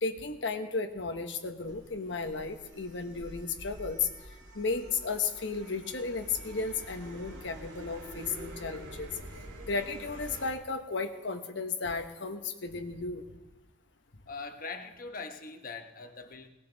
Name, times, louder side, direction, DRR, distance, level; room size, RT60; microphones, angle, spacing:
voice 1, 0.0-4.1 4.5-9.1 9.6-13.3, left 4 dB, 65° left, 7 dB, 1.1 m, -34 dB
sound 1, 1.6-10.5, right 1 dB, 75° right, 2.3 m, -47 dB
voice 2, 14.3-16.5, left 4 dB, 45° left, 6 dB, 1.1 m, -42 dB
19.0 x 13.5 x 4.0 m, 1.1 s
head